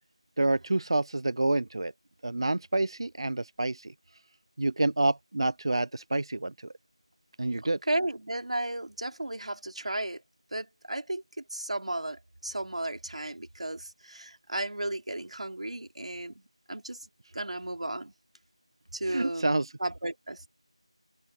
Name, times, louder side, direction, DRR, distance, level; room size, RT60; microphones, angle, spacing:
voice 1, 0.4-1.9 2.2-3.9 4.6-6.7 7.4-7.8 19.1-19.7, right 2 dB, 50° right, 0.4 m, -28 dB
voice 2, 7.6-10.2 10.5-16.4 16.7-17.0 17.3-18.1 18.9-19.5 19.8-20.5, right 1 dB, 90° right, 3.1 m, -34 dB
open air
figure-of-eight pair, 180°, 3 cm